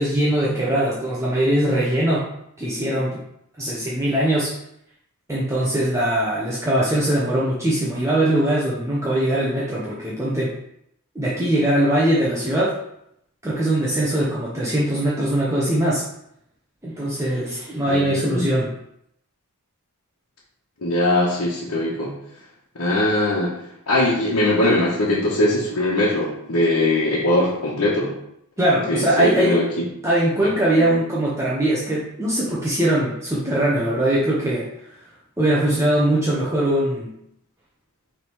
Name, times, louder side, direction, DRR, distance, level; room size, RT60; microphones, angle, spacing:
voice 1, 0.0-2.3 2.6-3.2 3.6-4.5 5.3-10.6 11.1-12.8 13.4-16.0 16.8-18.7 28.6-29.6 30.0-34.7 35.4-37.1, right 1 dB, 15° right, -7 dB, 0.9 m, -21 dB
voice 2, 17.9-18.6 20.8-22.1 22.8-23.5 23.9-28.1 28.9-29.7 30.4-30.5 30.9-31.0, left 1 dB, 80° left, -7 dB, 1.4 m, -21 dB
5.6 x 3.6 x 4.8 m, 0.75 s
head